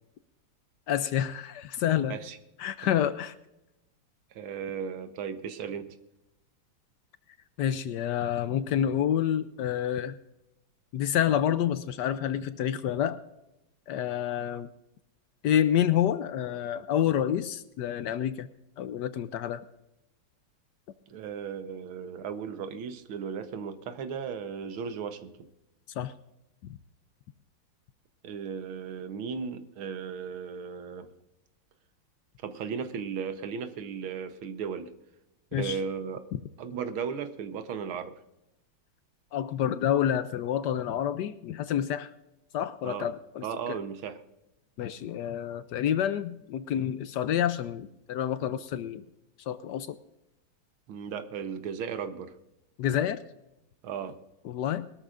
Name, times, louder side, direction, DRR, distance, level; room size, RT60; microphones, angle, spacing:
voice 1, 0.9-2.2 2.6-3.3 7.6-10.2 10.9-13.2 13.9-14.7 15.4-18.5 18.8-19.6 26.0-26.1 26.6-26.8 35.5-35.8 36.3-36.4 39.3-42.1 42.5-43.8 44.8-49.0 49.5-50.0 52.8-53.2 54.4-54.9, left 10 dB, 75° left, 12 dB, 1.0 m, -28 dB
voice 2, 4.3-6.0 21.1-25.3 28.2-31.1 32.4-34.9 35.5-36.2 36.6-38.1 42.8-43.1 43.4-44.2 50.9-52.3 53.8-54.2, right 6 dB, 80° right, 9 dB, 1.8 m, -36 dB
21.5 x 13.0 x 2.5 m, 0.91 s
omnidirectional pair, 2.3 m